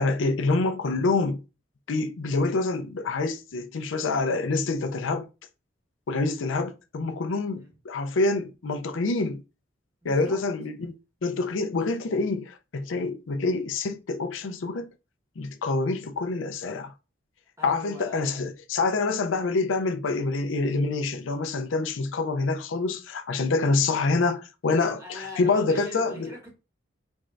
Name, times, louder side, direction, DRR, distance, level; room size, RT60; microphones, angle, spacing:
voice 1, 0.0-1.4 1.9-5.3 6.1-9.4 10.0-10.9 11.2-14.9 15.4-16.9 17.6-26.3, left 3 dB, 80° left, 0.5 m, -26 dB
voice 2, 10.0-10.4 17.6-18.4 25.0-26.5, equal, 15° right, 1.8 m, -41 dB
4.3 x 3.2 x 2.5 m
head